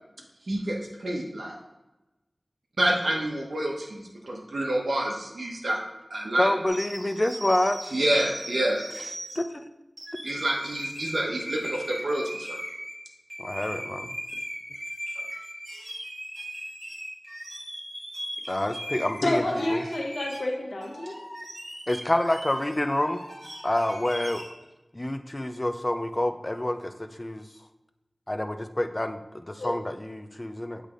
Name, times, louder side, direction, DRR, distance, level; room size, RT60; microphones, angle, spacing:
voice 1, 0.5-1.6 2.8-5.8 6.1-6.5 7.9-8.9 10.2-12.6, right 1 dB, 80° right, 0 dB, 1.0 m, -28 dB
voice 2, 6.4-8.0 9.4-9.7 13.4-14.1 18.5-19.4 19.7-19.8 21.9-23.2 23.6-24.4 24.9-26.9 27.2-27.4 28.3-30.8, left 1 dB, 30° left, 8 dB, 0.5 m, -27 dB
sound 1, 6.7-9.4 10.0-13.0 13.3-20.5 20.8-24.5, equal, 45° right, 2.1 m, -39 dB
voice 3, 19.2-21.1 29.6-29.7, left 1 dB, 90° left, -1 dB, 1.2 m, -28 dB
8.2 x 3.3 x 3.8 m, 1.0 s
wide cardioid pair, 50°, 0 cm